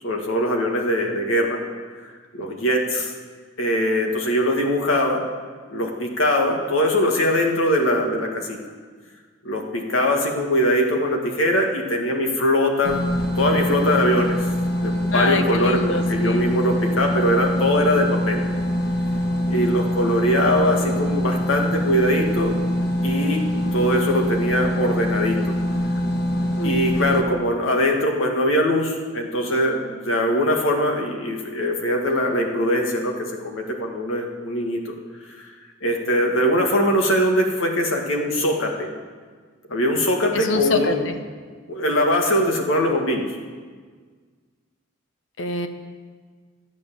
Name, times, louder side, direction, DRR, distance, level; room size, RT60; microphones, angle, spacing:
voice 1, 0.0-1.6 2.3-3.1 3.6-5.2 5.7-8.6 9.4-13.0 13.4-14.5 14.8-18.4 19.5-22.5 23.0-23.4 23.7-25.6 26.6-34.8 35.3-35.5 35.8-38.9 39.7-41.1 41.7-43.2, equal, 85° left, 2 dB, 1.8 m, -22 dB
sound 1, 12.8-27.2, equal, 50° left, 1.3 m, -24 dB
voice 2, 15.1-16.5 26.6-26.8 40.3-41.2 45.4-45.7, left 2 dB, 70° left, 7 dB, 0.9 m, -25 dB
12.0 x 8.5 x 6.8 m, 1.6 s
head